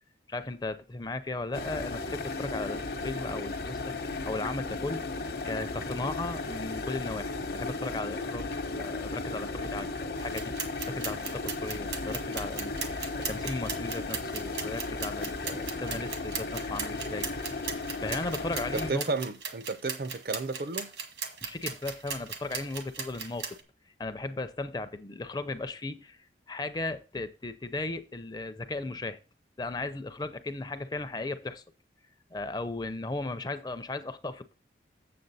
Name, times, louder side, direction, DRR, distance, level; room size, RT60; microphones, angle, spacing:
voice 1, 0.3-10.5 10.9-17.3 17.7-19.1 21.4-23.5 24.0-26.2 26.5-29.2 29.6-31.6 32.3-34.5, left 2 dB, 20° left, 0.5 m, -36 dB
sound 1, 1.5-18.9, left 3 dB, 60° left, 0.9 m, -35 dB
sound 2, 10.2-23.6, right 6 dB, 80° right, 1.5 m, -38 dB
voice 2, 18.7-20.9, right 3 dB, 55° right, 0.5 m, -32 dB
7.6 x 7.4 x 4.0 m
head